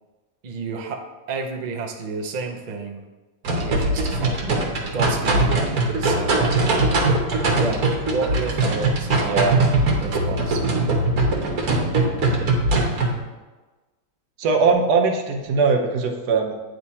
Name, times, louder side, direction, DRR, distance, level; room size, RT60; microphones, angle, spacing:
voice 1, 0.4-3.0 3.6-6.7 7.5-9.6 10.0-10.6, right 4 dB, 50° right, 3 dB, 0.5 m, -31 dB
sound 1, 3.5-13.2, right 2 dB, 65° right, 1.5 m, -21 dB
voice 2, 9.2-9.6 14.4-16.5, right 4 dB, 90° right, 3 dB, 1.4 m, -20 dB
9.1 x 3.3 x 4.1 m, 1.2 s
omnidirectional pair, 1.7 m